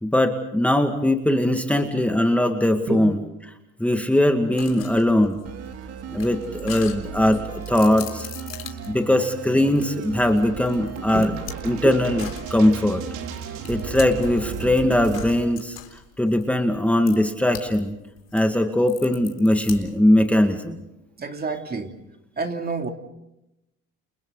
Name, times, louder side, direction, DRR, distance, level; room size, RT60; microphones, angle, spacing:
voice 1, 0.0-3.2 3.8-5.4 6.1-8.3 8.8-11.3 11.6-12.2 12.5-13.0 13.7-15.8 16.2-18.0 18.3-20.8, left 1 dB, 5° left, 5 dB, 2.0 m, -20 dB
sound 1, 4.6-14.5 15.1-17.8 18.1-20.1, left 9 dB, 55° left, 3.9 m, -41 dB
sound 2, 5.4-14.8, right 8 dB, 55° right, 2.3 m, -37 dB
sound 3, 10.4-15.4, right 6 dB, 75° right, 3.4 m, -36 dB
voice 2, 21.2-22.0 22.4-22.9, right 4 dB, 30° right, 4 dB, 2.8 m, -28 dB
30.0 x 30.0 x 4.0 m, 0.88 s
supercardioid pair, 90°, 30 cm